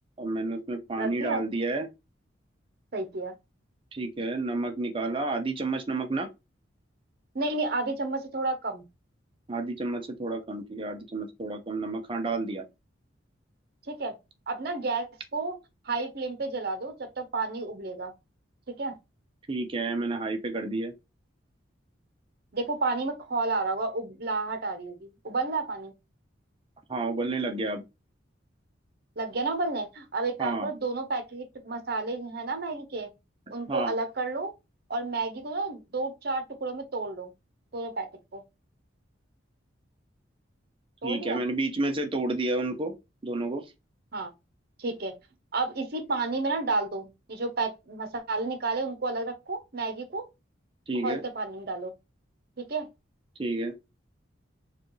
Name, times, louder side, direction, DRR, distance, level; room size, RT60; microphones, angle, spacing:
voice 1, 0.2-1.9 3.9-6.3 9.5-12.7 19.5-20.9 26.9-27.8 30.4-30.7 33.7-33.9 41.0-42.9 43.2-43.7 50.9-51.2 53.4-53.7, right 2 dB, 30° right, 0.6 m, -30 dB
voice 2, 1.0-1.4 2.9-3.3 7.3-8.8 13.9-14.1 14.5-15.6 15.9-18.1 18.7-18.9 22.5-25.9 29.2-33.1 33.5-34.5 34.9-37.3 37.7-38.4 41.0-41.4 44.1-44.3 44.8-45.1 45.5-50.3 51.0-51.9 52.6-52.9, right 3 dB, 55° right, 0.8 m, -31 dB
4.8 x 2.4 x 3.1 m
head